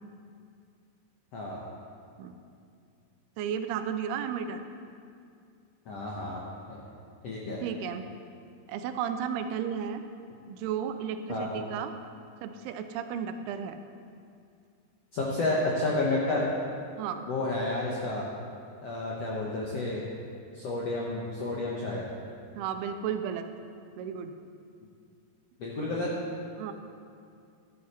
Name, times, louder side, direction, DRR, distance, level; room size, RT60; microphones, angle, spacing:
voice 1, 1.3-1.6 5.9-6.4 6.7-6.8 7.2-7.6 11.3-11.5 15.1-16.4 17.3-18.2 18.8-20.0 20.5-22.0 25.6-26.1, left 2 dB, 70° left, -4 dB, 1.5 m, -30 dB
voice 2, 3.4-4.7 7.6-8.1 8.7-10.0 10.5-11.9 12.4-13.8 17.0-17.3 22.6-23.5 24.0-24.3 26.6-26.7, right 8 dB, 85° right, 8 dB, 2.6 m, -33 dB
12.0 x 11.5 x 4.2 m, 2.4 s
omnidirectional pair, 4.6 m